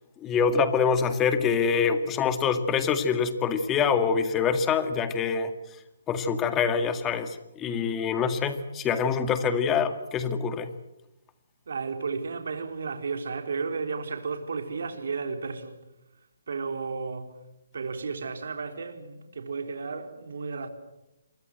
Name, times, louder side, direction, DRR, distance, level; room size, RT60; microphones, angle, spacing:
voice 1, 0.2-5.5 6.1-10.7, left 6 dB, 15° left, 1.9 m, -25 dB
voice 2, 11.7-15.8 16.5-17.4 17.7-20.7, right 4 dB, 70° right, 3.8 m, -33 dB
28.0 x 24.0 x 7.9 m
hypercardioid pair, 160°, 0 cm